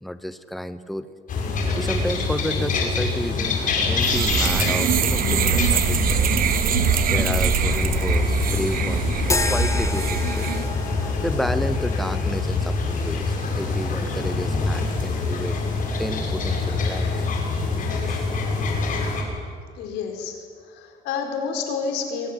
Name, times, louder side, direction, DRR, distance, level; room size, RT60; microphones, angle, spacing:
voice 1, 0.0-1.1 1.8-3.6 3.9-6.2 7.1-10.5 11.2-15.6 16.0-17.2 18.1-18.4, equal, ahead, 12 dB, 1.0 m, -31 dB
sound 1, 1.3-19.2, left 3 dB, 50° left, 6.1 m, -25 dB
sound 2, 4.0-10.7, right 9 dB, 60° right, 1.6 m, -23 dB
sound 3, 9.2-17.7, left 3 dB, 15° left, 1.4 m, -34 dB
voice 2, 19.8-20.4 20.6-22.3, left 5 dB, 90° left, 4 dB, 4.6 m, -29 dB
23.5 x 19.0 x 9.4 m, 2.1 s
cardioid pair, 110°, 17 cm